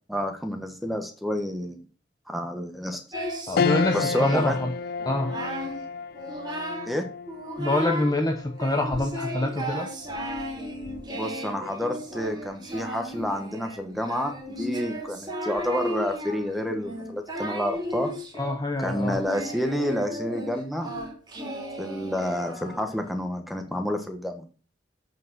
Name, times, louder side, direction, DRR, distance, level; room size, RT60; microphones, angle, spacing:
voice 1, 0.1-1.8 2.3-3.0 3.9-4.6 6.9-7.0 11.1-18.1 18.8-20.9 21.8-24.4, equal, ahead, 5 dB, 1.3 m, -29 dB
Singing, 3.1-4.6 5.0-5.8 6.1-7.0 7.3-8.2 8.6-23.1, equal, 25° right, 2.5 m, -35 dB
voice 2, 3.5-4.7 5.0-5.3 7.6-9.9 18.4-19.2, left 1 dB, 20° left, 4 dB, 0.8 m, -26 dB
sound 1, 3.6-13.2 13.6-13.7 15.1-15.5, left 5 dB, 55° left, 0.3 m, -33 dB
8.2 x 5.4 x 6.3 m, 0.38 s
head